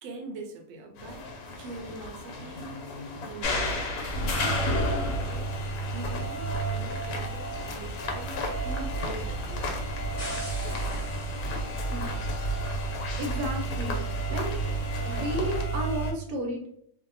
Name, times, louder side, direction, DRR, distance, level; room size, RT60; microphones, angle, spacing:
voice 1, 0.0-3.9 4.4-9.7, right 3 dB, 70° right, 2 dB, 0.8 m, -43 dB
sound 1, 1.0-15.6, left 3 dB, 90° left, 1.1 m, -39 dB
sound 2, 3.4-16.1, right 2 dB, 65° left, 0.9 m, -31 dB
sound 3, 10.2-15.3, left 1 dB, 30° left, 0.7 m, -46 dB
voice 2, 13.2-14.0 14.3-14.5 15.0-16.7, equal, 85° right, 2 dB, 1.2 m, -32 dB
2.7 x 2.1 x 2.6 m, 0.71 s
omnidirectional pair, 1.5 m